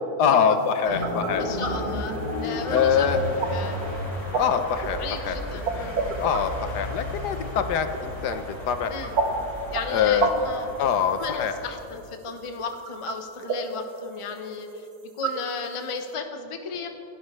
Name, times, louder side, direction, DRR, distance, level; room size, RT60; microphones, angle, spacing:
voice 1, 0.2-1.4 2.7-3.2 4.3-5.4 6.2-8.9 9.9-10.3 10.8-11.5, left 7 dB, 80° left, 9 dB, 1.4 m, -24 dB
sound 1, 0.6-16.1, right 4 dB, 65° right, 1.6 m, -33 dB
sound 2, 0.9-11.7, left 1 dB, 65° left, 4.3 m, -33 dB
voice 2, 1.4-3.1 3.5-4.0 5.0-6.1 8.9-9.2 9.7-10.7 11.2-16.9, left 5 dB, 25° left, 5 dB, 0.7 m, -35 dB
28.0 x 12.0 x 3.2 m, 2.9 s
omnidirectional pair, 1.7 m